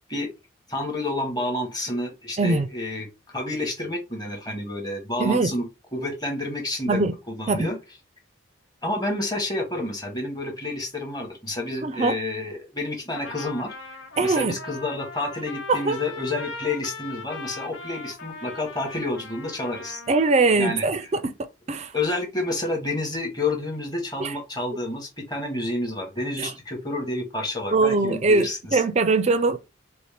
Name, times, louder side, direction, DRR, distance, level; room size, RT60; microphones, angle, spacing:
voice 1, 0.7-5.6 5.9-7.8 8.8-20.0 20.6-20.9 21.9-28.8, left 2 dB, 20° left, 0.9 m, -29 dB
voice 2, 2.4-2.7 5.2-5.5 6.9-7.1 7.5-7.7 11.8-12.2 14.2-14.6 15.7-16.0 20.1-21.3 21.7-21.9 24.2-24.3 26.4-26.5 27.7-29.7, right 3 dB, 35° right, 0.4 m, -22 dB
Trumpet, 13.1-20.5, left 4 dB, 80° left, 0.8 m, -39 dB
4.2 x 2.1 x 3.2 m
head